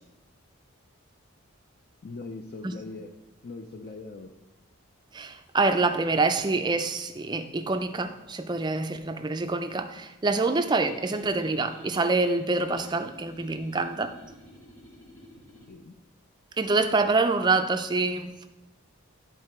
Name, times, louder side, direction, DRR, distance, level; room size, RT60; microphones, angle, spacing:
voice 1, 2.0-3.1 3.4-4.4 15.7-16.0, left 3 dB, 45° left, 5 dB, 0.4 m, -41 dB
voice 2, 5.1-14.1 16.6-18.5, right 3 dB, 20° right, 8 dB, 0.4 m, -26 dB
sound 1, 10.5-15.7, left 1 dB, 80° left, 2.4 m, -49 dB
10.5 x 4.0 x 4.3 m, 1.0 s
head